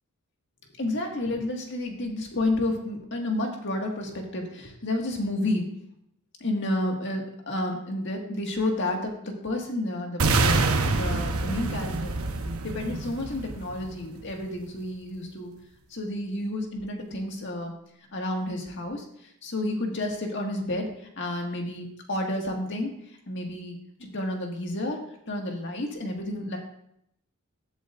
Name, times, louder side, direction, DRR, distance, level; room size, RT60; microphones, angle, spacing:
voice 1, 0.7-5.6 6.4-10.6 10.9-12.2 12.6-15.5 15.9-17.7 18.1-22.9 23.3-25.0 25.3-26.6, left 1 dB, 55° left, 1 dB, 1.9 m, -30 dB
sound 1, 10.2-14.2, right 3 dB, 80° right, 0.9 m, -26 dB
15.5 x 8.2 x 2.5 m, 0.74 s
head